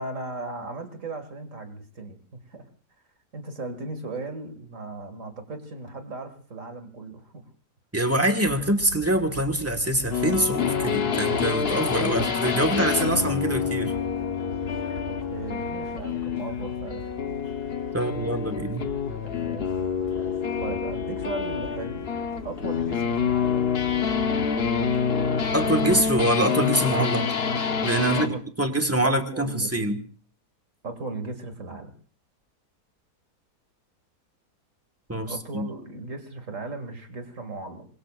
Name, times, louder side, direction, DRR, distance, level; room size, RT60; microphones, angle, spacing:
voice 1, 0.0-2.2 2.5-2.7 3.3-7.4 15.3-17.1 18.0-18.3 19.2-19.7 20.1-22.1 22.4-24.2 28.1-28.4 29.0-29.7 30.8-31.9 35.3-37.9, right 3 dB, 50° right, 8 dB, 2.4 m, -37 dB
voice 2, 7.9-13.9 17.9-18.9 25.5-27.3 27.8-30.0 35.1-35.7, right 1 dB, 10° right, 5 dB, 1.5 m, -25 dB
sound 1, 8.4-26.2, left 1 dB, 70° left, 2.7 m, -42 dB
sound 2, 10.1-28.4, left 6 dB, 40° left, 1.1 m, -27 dB
26.5 x 22.0 x 2.5 m, 0.41 s
omnidirectional pair, 1.7 m